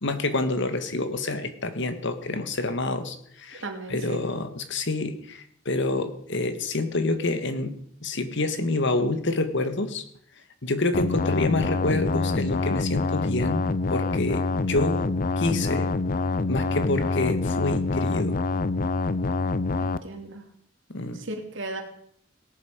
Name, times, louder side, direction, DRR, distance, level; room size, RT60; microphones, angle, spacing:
voice 1, 0.0-3.6 3.9-10.0 10.6-15.1 15.4-15.9 16.5-18.4 20.9-21.2, left 2 dB, 65° left, 9 dB, 1.6 m, -27 dB
voice 2, 3.5-4.2 19.8-20.4 21.1-21.8, right 2 dB, 65° right, 4 dB, 2.7 m, -36 dB
sound 1, 10.9-20.0, left 3 dB, 45° left, 0.6 m, -26 dB
17.5 x 11.0 x 5.1 m, 0.66 s
head